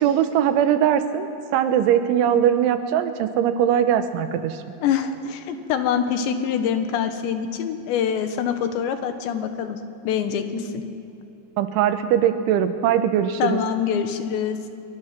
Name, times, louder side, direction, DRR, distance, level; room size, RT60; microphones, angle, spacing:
voice 1, 0.0-4.6 11.6-13.6, right 9 dB, 85° right, 9 dB, 3.5 m, -21 dB
voice 2, 4.8-9.8 10.1-10.8 13.4-14.6, left 8 dB, 75° left, 7 dB, 3.5 m, -25 dB
26.0 x 23.5 x 6.0 m, 2.9 s
omnidirectional pair, 5.3 m